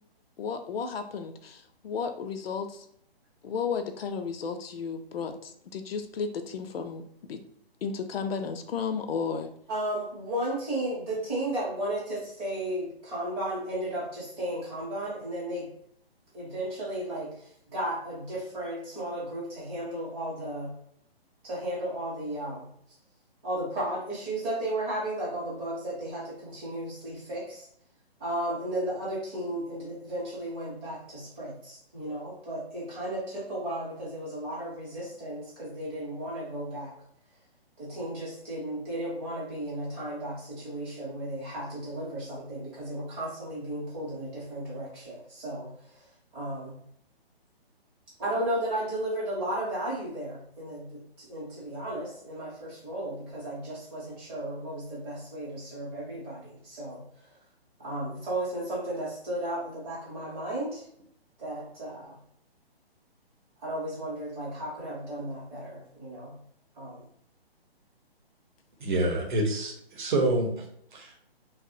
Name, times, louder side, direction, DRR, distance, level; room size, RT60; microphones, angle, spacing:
voice 1, 0.4-2.8 3.4-7.0 7.3-7.4 7.8-9.5, left 6 dB, 70° left, 7 dB, 0.5 m, -33 dB
voice 2, 9.7-15.7 16.3-20.7 21.4-22.7 23.4-27.7 28.2-36.9 37.8-46.1 46.3-46.8 48.2-57.0 57.8-60.8 61.4-62.2 63.6-66.4 66.8-67.0, right 1 dB, 10° right, -7 dB, 0.6 m, -34 dB
voice 3, 68.8-70.6 70.9-71.1, right 2 dB, 50° right, 1 dB, 0.8 m, -27 dB
2.9 x 2.0 x 2.6 m, 0.69 s
hypercardioid pair, 155°, 31 cm